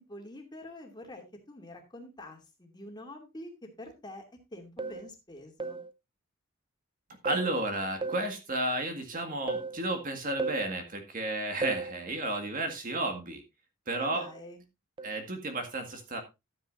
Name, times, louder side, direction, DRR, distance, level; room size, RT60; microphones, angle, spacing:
voice 1, 0.0-4.2 4.5-5.8 14.0-14.6, left 1 dB, 20° left, 2 dB, 2.6 m, -46 dB
sound 1, 4.8-5.1 5.6-5.9 7.3-7.6 8.0-8.3 9.5-9.8 10.4-10.7 11.6-11.9 14.2-14.4 15.0-15.2, right 4 dB, 25° right, 0.5 m, -34 dB
voice 2, 7.2-13.4 13.9-14.3 15.0-16.2, right 2 dB, 40° right, 5 dB, 1.9 m, -32 dB
13.0 x 9.1 x 2.6 m, 0.24 s
head